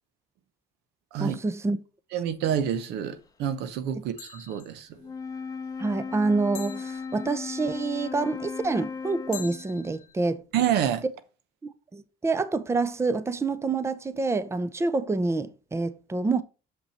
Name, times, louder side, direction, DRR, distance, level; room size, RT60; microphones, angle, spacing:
voice 1, 1.2-1.8 5.8-10.4 11.9-16.4, right 3 dB, 15° right, 0.7 m, -27 dB
voice 2, 2.1-4.9 10.5-11.0, right 9 dB, 85° right, 0.9 m, -28 dB
sound 1, 2.7-3.0 4.2-4.9 6.6-7.6 9.3-10.3, left 9 dB, 50° left, 1.0 m, -45 dB
Wind instrument woodwind instrument, 5.0-9.8, left 5 dB, 20° left, 0.8 m, -36 dB
6.7 x 5.6 x 4.3 m
cardioid pair, 110°, 17 cm